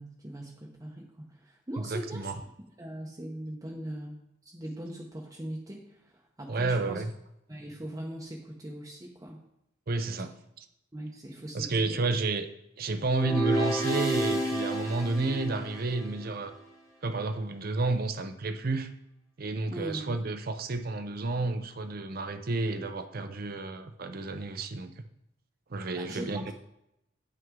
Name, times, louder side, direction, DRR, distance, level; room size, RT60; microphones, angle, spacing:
voice 1, 0.0-2.3 2.8-7.0 7.5-9.4 10.9-12.0 19.7-20.2 25.9-26.5, right 1 dB, 15° right, -2 dB, 0.8 m, -40 dB
voice 2, 1.8-2.3 6.5-7.1 9.9-10.7 11.5-12.5 12.8-16.5 17.0-18.9 19.4-24.9 25.7-26.5, right 3 dB, 45° right, 8 dB, 0.6 m, -31 dB
sound 1, 13.1-16.3, right 1 dB, 15° left, 1.2 m, -30 dB
9.1 x 5.7 x 3.7 m, 0.82 s
head